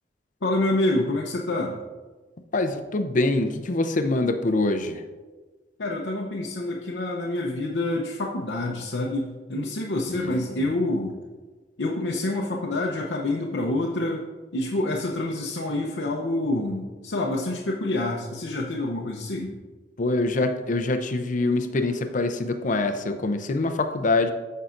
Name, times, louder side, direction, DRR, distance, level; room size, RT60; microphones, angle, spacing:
voice 1, 0.4-1.8 5.8-11.1 11.8-14.2 14.5-19.5, left 2 dB, 80° left, -2 dB, 0.7 m, -27 dB
voice 2, 2.5-5.0 10.1-10.6 20.0-24.3, left 2 dB, 45° left, 7 dB, 0.6 m, -25 dB
13.5 x 5.5 x 2.5 m, 1.3 s
head